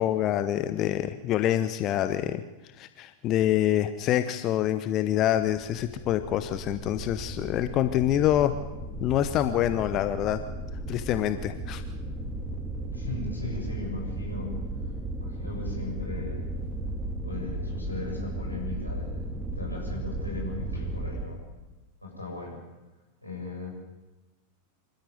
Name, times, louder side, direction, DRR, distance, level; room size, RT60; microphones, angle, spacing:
voice 1, 0.0-2.4 2.8-8.6 9.0-10.4 10.9-11.8, left 12 dB, 35° left, 11 dB, 0.9 m, -26 dB
sound 1, 5.3-21.3, right 1 dB, 10° right, 3.1 m, -35 dB
voice 2, 12.9-14.5 14.8-16.4 17.2-19.2 19.5-21.4 22.0-22.6 23.2-23.7, left 2 dB, 85° left, -2 dB, 7.6 m, -37 dB
26.0 x 13.5 x 9.4 m, 1.1 s
figure-of-eight pair, 90°, 0 cm